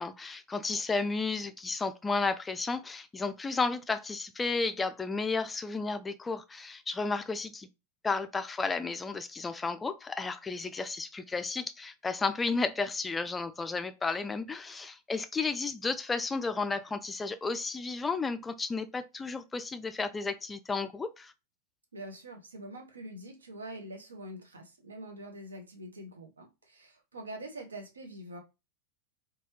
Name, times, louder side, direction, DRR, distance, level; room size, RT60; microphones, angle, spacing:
voice 1, 0.0-7.7 8.0-21.3, left 4 dB, 15° left, 0.3 m, -33 dB
voice 2, 21.9-28.4, right 1 dB, 75° right, 0.7 m, -44 dB
3.1 x 2.3 x 3.0 m
figure-of-eight pair, 90°, 0 cm